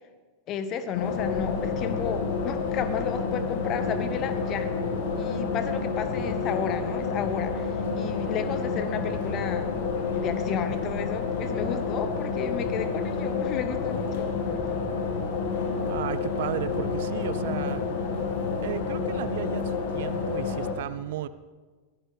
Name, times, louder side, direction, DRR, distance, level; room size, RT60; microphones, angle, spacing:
voice 1, 0.5-4.7 5.1-9.7 10.1-14.3, left 8 dB, 35° left, 11 dB, 1.3 m, -32 dB
sound 1, 0.9-20.7, left 4 dB, 55° left, 1.9 m, -29 dB
voice 2, 15.8-17.8 18.6-21.3, right 12 dB, 55° right, 15 dB, 0.5 m, -34 dB
22.5 x 16.0 x 3.4 m, 1.4 s
figure-of-eight pair, 90°, 0 cm